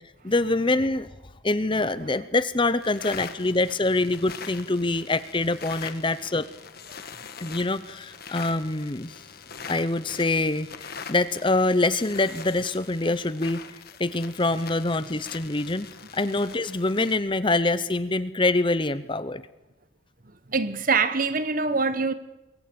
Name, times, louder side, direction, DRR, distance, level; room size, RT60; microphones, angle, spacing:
voice 1, 0.2-1.1 1.4-6.5 7.4-9.2 9.7-13.6 14.0-15.9 16.1-19.4, left 2 dB, 25° left, 0.8 m, -25 dB
sound 1, 2.8-17.2, left 6 dB, 45° left, 1.7 m, -43 dB
voice 2, 20.5-22.1, right 4 dB, 40° right, 1.2 m, -24 dB
23.0 x 22.5 x 8.7 m
head